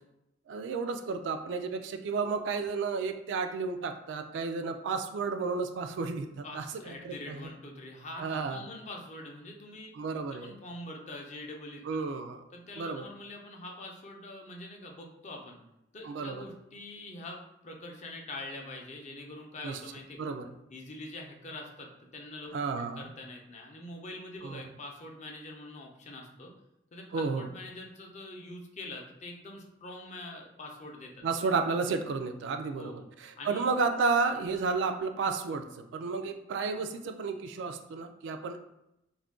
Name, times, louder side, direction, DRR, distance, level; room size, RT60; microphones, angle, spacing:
voice 1, 0.5-7.5 8.2-8.6 9.9-10.6 11.9-12.4 12.8-13.0 16.0-16.4 19.6-19.8 20.2-20.5 22.5-23.0 24.4-24.6 27.1-27.5 31.2-38.6, right 4 dB, 75° right, 7 dB, 0.3 m, -32 dB
voice 2, 6.4-9.9 10.3-11.8 12.5-15.6 15.9-20.2 20.7-22.5 23.0-26.5 26.9-31.2 32.7-33.1 33.4-33.7, left 2 dB, 40° left, 1 dB, 0.5 m, -44 dB
2.4 x 2.2 x 3.5 m, 0.85 s
head